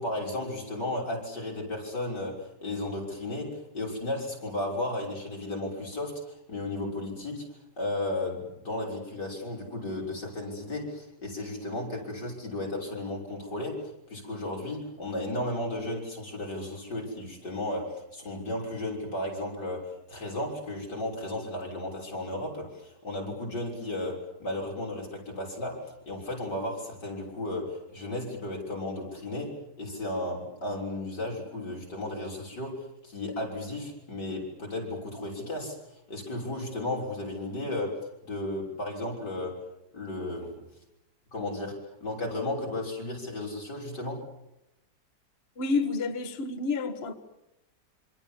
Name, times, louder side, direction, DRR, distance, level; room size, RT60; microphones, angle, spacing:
voice 1, 0.0-7.5 7.8-35.8 36.1-39.6 39.9-40.6 41.3-44.2, left 1 dB, 90° left, 7.0 m, -34 dB
voice 2, 45.6-47.1, left 4 dB, 40° left, 1.7 m, -29 dB
26.0 x 25.5 x 7.4 m
omnidirectional pair, 1.8 m